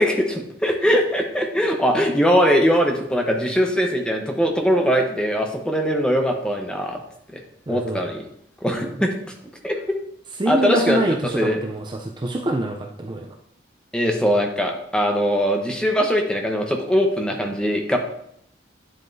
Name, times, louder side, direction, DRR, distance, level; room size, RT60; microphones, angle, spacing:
voice 1, 0.0-7.0 7.3-7.4 7.7-8.2 8.6-9.1 9.6-9.8 10.5-11.0 11.4-11.6 13.9-18.0, equal, 5° left, 2 dB, 0.9 m, -21 dB
voice 2, 7.7-8.0 8.6-9.0 10.4-13.3, right 1 dB, 25° right, 2 dB, 0.5 m, -25 dB
9.6 x 7.7 x 2.7 m, 0.73 s
head